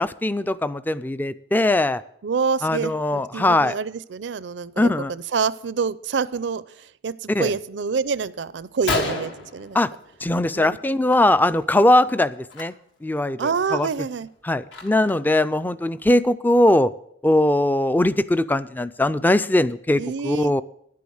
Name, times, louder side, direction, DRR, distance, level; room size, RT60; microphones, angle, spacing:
voice 1, 0.0-2.0 2.6-3.7 4.8-5.1 7.3-7.5 9.7-9.9 10.2-12.7 13.0-13.9 14.4-16.9 17.2-20.6, left 1 dB, 10° left, 15 dB, 0.3 m, -20 dB
voice 2, 2.2-9.8 10.5-10.8 13.4-14.3 19.9-20.5, right 5 dB, 65° right, 17 dB, 0.5 m, -27 dB
Gunshot gunfire, 8.2-8.3 8.6-8.7 8.9-10.5 10.8-11.2 11.4-11.6 12.4-12.6 13.2-13.3 13.7-15.3, left 3 dB, 80° left, 1.7 m, -30 dB
10.5 x 8.5 x 6.4 m, 0.72 s
head